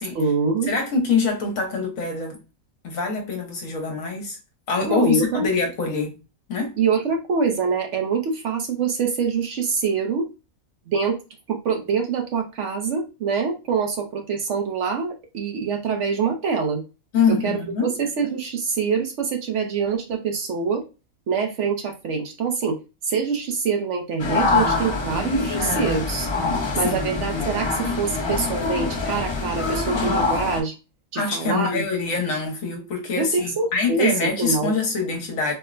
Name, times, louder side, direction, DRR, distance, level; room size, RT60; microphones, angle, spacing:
voice 1, 0.1-0.7 4.9-5.5 6.8-10.3 10.9-11.2 11.5-16.8 17.3-20.8 21.3-22.8 23.0-26.3 26.7-30.7 31.1-31.8 33.2-34.7, right 5 dB, 65° right, 0.9 m, -25 dB
voice 2, 0.7-2.4 2.8-4.4 4.7-6.2 6.5-6.7 17.1-17.9 26.8-27.3 31.1-35.5, left 4 dB, 70° left, 1.3 m, -24 dB
sound 1, 24.2-30.6, left 3 dB, 40° left, 0.4 m, -24 dB
4.3 x 2.0 x 2.4 m
omnidirectional pair, 1.5 m